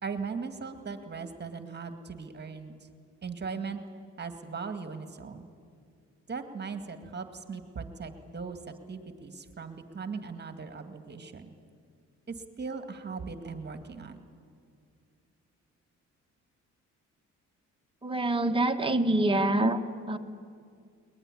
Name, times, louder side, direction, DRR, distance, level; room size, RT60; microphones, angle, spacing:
voice 1, 0.0-2.9 3.2-3.8 4.2-5.5 6.3-11.5 12.3-14.2, right 5 dB, 35° right, 8 dB, 2.2 m, -39 dB
voice 2, 18.0-19.8 20.1-20.2, right 1 dB, 15° right, 5 dB, 1.7 m, -25 dB
22.0 x 20.0 x 10.0 m, 2.3 s
cardioid pair, 90°, 30 cm